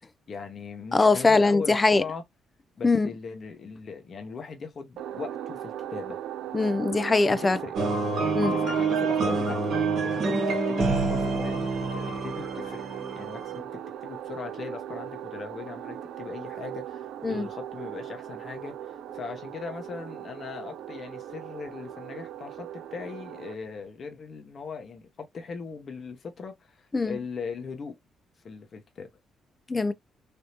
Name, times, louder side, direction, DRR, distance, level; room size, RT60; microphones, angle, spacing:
voice 1, 0.3-2.2 2.8-6.2 7.3-7.7 8.4-12.8 13.2-13.7 14.0-28.0 28.4-29.1, left 5 dB, 50° left, 0.8 m, -39 dB
voice 2, 0.9-2.0 2.8-3.1 6.5-7.6 8.3-8.5 17.2-17.5 26.9-27.2 29.7-29.9, left 3 dB, 25° left, 0.4 m, -22 dB
sound 1, 5.0-23.5, right 10 dB, 80° right, 0.4 m, -38 dB
sound 2, 7.7-13.6, right 3 dB, 60° right, 1.1 m, -27 dB
3.4 x 2.7 x 2.8 m
cardioid pair, 90°, 0 cm